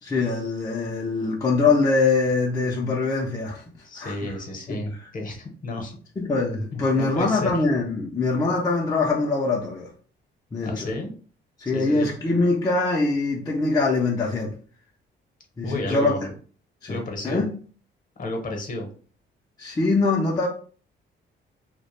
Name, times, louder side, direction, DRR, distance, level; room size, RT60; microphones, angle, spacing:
voice 1, 0.0-3.6 4.0-4.4 4.7-5.1 6.2-9.9 10.5-10.9 11.6-14.6 15.6-16.3 16.8-17.6 19.6-20.5, left 3 dB, 20° left, 0.4 m, -23 dB
voice 2, 3.8-6.0 6.7-7.5 10.6-11.1 11.7-12.1 15.6-16.3 16.9-17.4 18.2-18.9, left 2 dB, 40° left, 0.8 m, -31 dB
2.2 x 2.1 x 3.0 m
cardioid pair, 90°, 20 cm